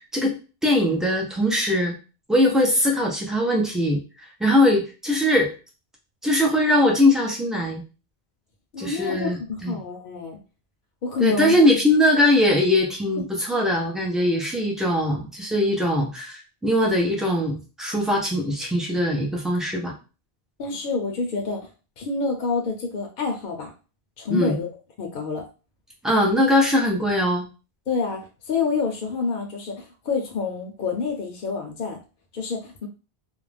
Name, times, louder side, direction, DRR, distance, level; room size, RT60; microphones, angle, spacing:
voice 1, 0.1-1.9 2.3-5.5 6.2-7.8 8.8-9.8 11.2-19.9 24.3-24.5 26.0-27.5, left 1 dB, ahead, -1 dB, 0.3 m, -21 dB
voice 2, 8.7-10.4 11.0-11.5 13.2-13.3 20.6-21.7 22.0-23.7 24.2-24.7 25.0-25.4 27.9-32.0 32.3-32.9, left 4 dB, 60° left, 2 dB, 0.7 m, -27 dB
2.4 x 2.0 x 3.3 m, 0.32 s
omnidirectional pair, 1.0 m